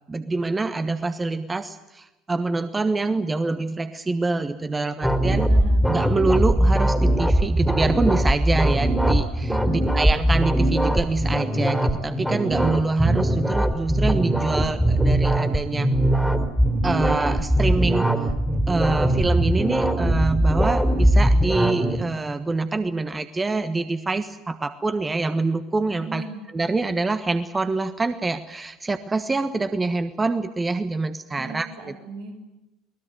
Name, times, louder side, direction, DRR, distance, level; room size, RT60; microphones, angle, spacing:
voice 1, 0.1-5.5 5.9-15.9 16.8-18.1 18.7-26.2 26.5-31.7, right 3 dB, 20° right, 11 dB, 1.3 m, -25 dB
sound 1, 5.0-22.0, right 1 dB, 5° right, 3.0 m, -21 dB
voice 2, 5.3-5.9 9.5-9.8 26.0-26.4 31.3-32.4, right 3 dB, 75° right, 1 dB, 5.9 m, -37 dB
23.0 x 20.0 x 8.0 m, 1.0 s
figure-of-eight pair, 65°, 0 cm